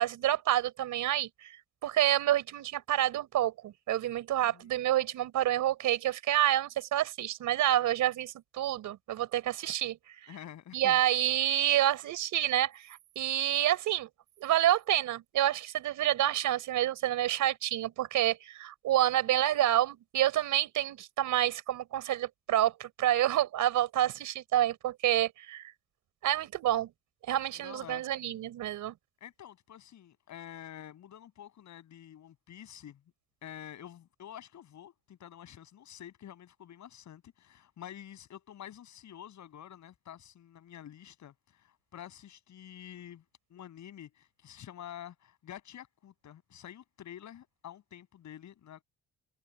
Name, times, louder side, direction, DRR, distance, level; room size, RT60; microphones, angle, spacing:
voice 1, 0.0-1.6 1.8-10.3 10.7-14.1 14.4-25.6 26.2-26.9 27.3-28.9, right 12 dB, 80° right, 4.4 m, -28 dB
voice 2, 10.3-11.0 27.6-28.0 29.2-33.0 33.4-43.2 43.5-48.8, left 10 dB, 70° left, 7.2 m, -48 dB
cardioid pair, 90°, 30 cm